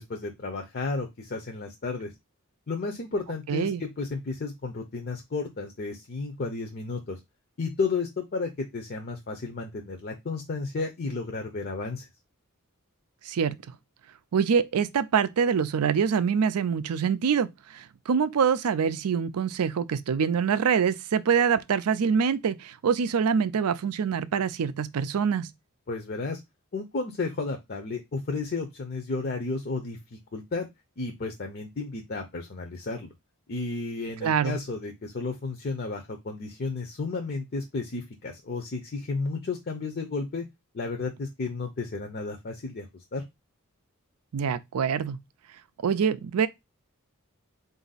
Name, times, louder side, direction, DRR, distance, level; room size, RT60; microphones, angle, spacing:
voice 1, 0.0-2.1 2.7-7.2 7.6-12.1 25.9-26.4 26.7-30.7 31.0-33.1 33.5-40.4 40.7-42.9 43.1-43.2, left 3 dB, 45° left, 0.6 m, -32 dB
voice 2, 3.5-3.8 13.2-13.6 14.3-25.5 34.2-34.6 44.3-45.2 45.8-46.5, right 6 dB, 85° right, 0.4 m, -25 dB
4.0 x 2.6 x 3.9 m
head